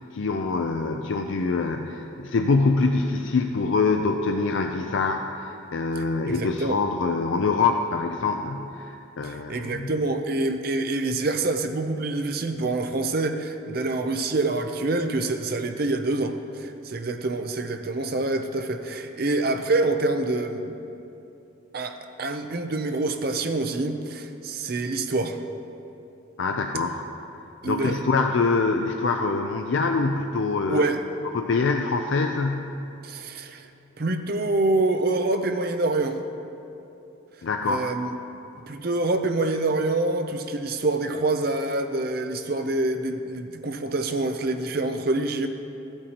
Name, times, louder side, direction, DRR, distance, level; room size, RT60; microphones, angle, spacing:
voice 1, 0.1-9.9 26.4-27.0 27.6-30.8 31.3-32.7 37.4-37.9, left 4 dB, 65° left, 4 dB, 0.4 m, -25 dB
voice 2, 6.0-6.8 9.2-20.8 21.7-25.4 27.6-28.0 30.7-31.0 33.0-33.7 34.0-36.2 37.6-38.1 38.7-45.5, right 2 dB, 45° right, 7 dB, 0.5 m, -26 dB
14.5 x 8.8 x 2.9 m, 2.8 s
head